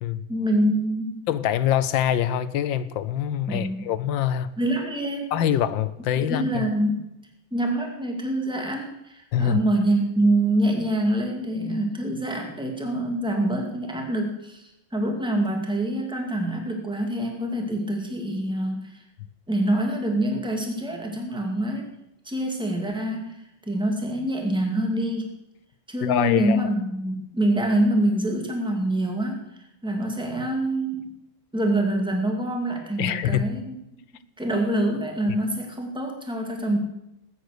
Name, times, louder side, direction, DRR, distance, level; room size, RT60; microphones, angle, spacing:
voice 1, 0.3-1.2 3.5-3.9 4.6-5.3 6.2-7.0 7.5-19.0 19.5-21.9 22.2-23.4 23.7-25.4 25.9-29.4 29.8-31.1 31.5-33.8 34.4-36.8, right 1 dB, ahead, 2 dB, 2.3 m, -25 dB
voice 2, 1.3-4.5 5.3-6.7 9.3-9.6 26.0-26.6 33.0-33.4, left 10 dB, 75° left, 15 dB, 1.4 m, -24 dB
19.5 x 9.5 x 6.6 m, 0.87 s
omnidirectional pair, 2.2 m